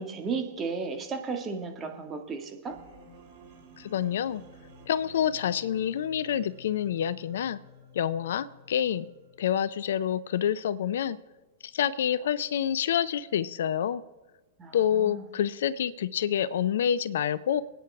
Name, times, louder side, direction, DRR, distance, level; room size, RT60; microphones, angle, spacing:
voice 1, 0.0-2.8 14.6-15.2, right 4 dB, 25° right, 4 dB, 2.0 m, -34 dB
sound 1, 2.7-9.7, left 2 dB, 50° right, 4.1 m, -53 dB
voice 2, 3.8-4.4 4.9-7.6 7.9-9.1 9.4-11.2 11.6-14.0 14.7-17.6, left 9 dB, 65° left, 17 dB, 0.5 m, -27 dB
26.0 x 9.2 x 3.5 m, 1.2 s
figure-of-eight pair, 100°, 0 cm